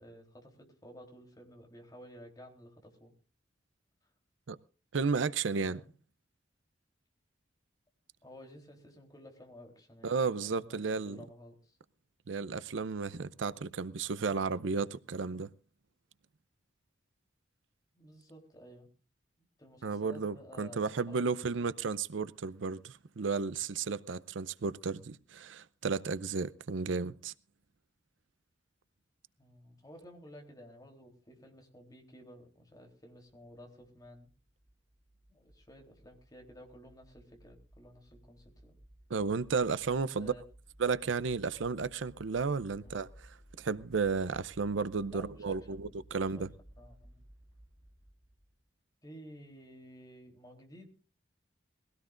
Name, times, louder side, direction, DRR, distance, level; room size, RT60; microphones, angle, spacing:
voice 1, 0.0-3.1 5.7-5.9 8.2-11.8 17.9-18.9 19.6-21.7 29.4-34.3 35.3-38.8 40.2-40.4 42.8-43.0 45.1-46.0 46.3-46.5 46.8-47.2 49.0-50.9, equal, 20° left, 3.4 m, -53 dB
voice 2, 4.9-5.8 10.0-11.2 12.3-15.5 19.8-27.3 39.1-40.3 40.8-46.5, right 4 dB, 90° right, 0.6 m, -33 dB
sound 1, 33.3-48.6, right 1 dB, 10° right, 4.6 m, -58 dB
22.0 x 17.0 x 2.5 m
head